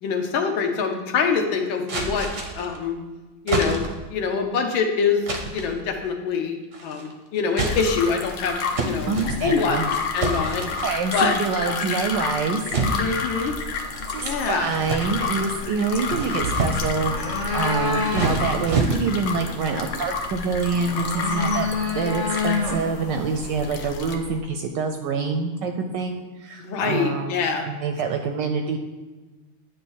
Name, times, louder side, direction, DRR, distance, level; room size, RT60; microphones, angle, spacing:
voice 1, 0.0-2.3 2.5-3.0 3.4-3.8 4.1-5.2 5.5-9.1 9.4-9.8 10.1-10.6 11.1-11.3 11.7-11.8 13.0-13.5 14.2-14.7 26.6-27.7, left 5 dB, 70° left, 3 dB, 1.6 m, -24 dB
sound 1, 1.9-2.8 3.5-4.1 5.3-5.8 6.7-7.1 7.5-8.2 8.8-9.7 10.2-10.9 11.2-11.6 12.7-13.6 14.2-15.5 15.9-17.0 17.7-19.3, right 3 dB, 55° right, 0.6 m, -28 dB
sound 2, 7.6-24.2, left 5 dB, 85° left, 1.6 m, -31 dB
voice 2, 9.1-9.9 10.6-12.6 14.1-21.7 21.9-27.3 27.7-28.8, right 4 dB, 75° right, 5 dB, 1.1 m, -26 dB
sound 3, 13.6-24.4, left 3 dB, 40° left, 0.7 m, -30 dB
9.1 x 3.2 x 6.2 m, 1.2 s
omnidirectional pair, 2.3 m